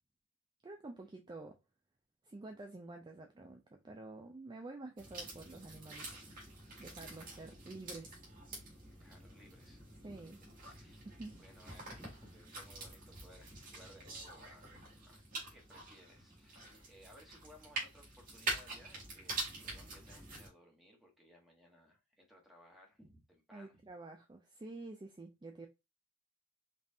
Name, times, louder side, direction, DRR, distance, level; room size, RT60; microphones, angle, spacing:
voice 1, 0.6-1.6 2.2-6.5 6.8-8.2 10.0-10.4 11.0-11.3 23.5-25.7, right 2 dB, 20° right, 0.4 m, -49 dB
sound 1, 5.0-20.5, right 2 dB, 40° right, 2.1 m, -46 dB
voice 2, 9.0-10.2 10.6-15.2 15.5-23.8, equal, ahead, 1.1 m, -61 dB
5.2 x 2.5 x 2.7 m
head